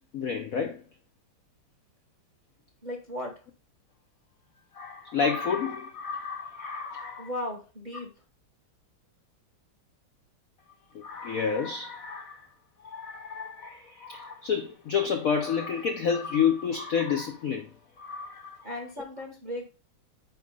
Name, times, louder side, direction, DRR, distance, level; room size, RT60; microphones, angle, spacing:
voice 1, 0.1-0.8 4.7-7.3 10.9-12.5 12.8-17.7 18.0-18.7, left 6 dB, 70° left, 0.8 m, -30 dB
voice 2, 2.8-3.3 7.2-8.1 18.6-19.7, left 1 dB, 35° right, 0.7 m, -36 dB
4.7 x 4.2 x 5.3 m
omnidirectional pair, 2.2 m